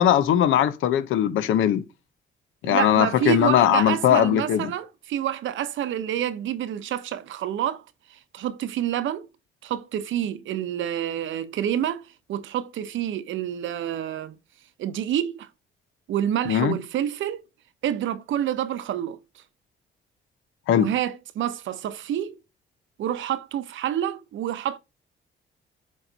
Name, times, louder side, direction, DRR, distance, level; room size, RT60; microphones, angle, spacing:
voice 1, 0.0-1.8 2.6-4.7 16.5-16.7 20.7-20.9, left 10 dB, 80° left, 0.8 m, -20 dB
voice 2, 2.6-7.8 8.1-9.3 9.6-12.0 12.3-14.4 14.8-15.5 16.1-17.4 17.8-19.2 20.7-22.4 23.0-24.8, right 10 dB, 75° right, 0.8 m, -28 dB
8.2 x 3.1 x 4.0 m
cardioid pair, 90°, 20 cm